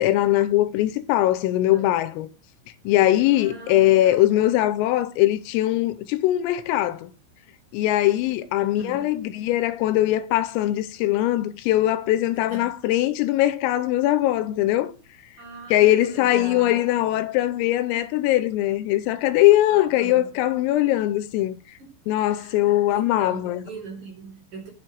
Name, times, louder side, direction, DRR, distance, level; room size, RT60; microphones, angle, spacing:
voice 1, 0.0-2.3 2.9-7.1 7.7-14.9 15.7-21.6 22.1-23.6, left 14 dB, 90° left, 3.4 m, -21 dB
voice 2, 3.3-4.3 8.6-9.2 12.5-12.7 15.4-16.8 19.7-20.4 21.8-21.9 22.3-22.6 22.9-24.7, right 3 dB, 40° right, 4.4 m, -41 dB
8.2 x 7.8 x 6.2 m
omnidirectional pair, 6.0 m